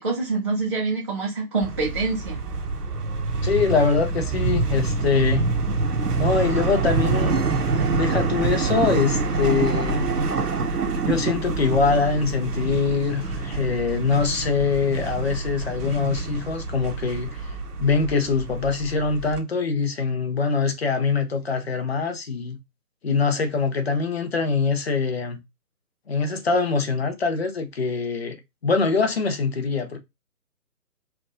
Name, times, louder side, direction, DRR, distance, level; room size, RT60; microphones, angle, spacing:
voice 1, 0.0-2.4, right 3 dB, 20° right, 0.7 m, -26 dB
sound 1, 1.6-19.4, right 3 dB, 75° right, 1.1 m, -26 dB
voice 2, 3.4-5.5 6.2-7.6 7.9-10.1 11.0-22.6 23.0-25.4 26.1-30.0, left 4 dB, 40° left, 0.8 m, -23 dB
4.6 x 2.5 x 3.6 m
figure-of-eight pair, 155°, 47 cm